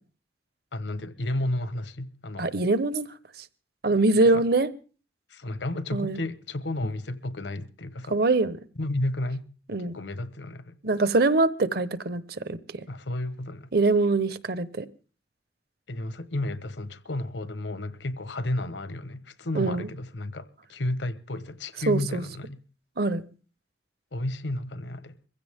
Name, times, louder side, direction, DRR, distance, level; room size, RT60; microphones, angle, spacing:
voice 1, 0.7-2.5 4.2-4.4 5.3-8.2 8.8-9.5 9.8-10.8 12.9-13.7 15.9-22.6 24.1-25.2, left 1 dB, 90° left, 1.2 m, -32 dB
voice 2, 2.4-3.1 3.8-4.7 5.9-6.2 8.1-8.6 9.7-10.0 10.8-12.6 13.7-14.9 19.5-19.9 21.9-22.2 23.0-23.2, right 3 dB, 60° right, 1.0 m, -23 dB
23.0 x 15.5 x 3.6 m
head